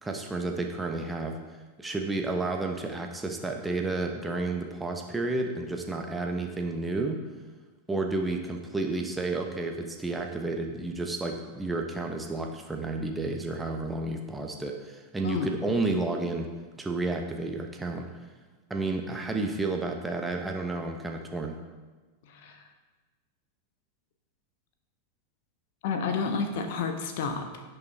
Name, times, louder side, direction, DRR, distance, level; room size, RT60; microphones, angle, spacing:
voice 1, 0.0-1.4 1.8-7.2 7.9-16.5 16.8-18.0 18.7-21.5, right 2 dB, 10° right, 2 dB, 1.1 m, -31 dB
voice 2, 15.2-15.6 22.2-22.6 25.8-27.6, left 5 dB, 50° left, 6 dB, 1.1 m, -30 dB
17.0 x 5.6 x 3.5 m, 1.3 s
figure-of-eight pair, 90°, 0 cm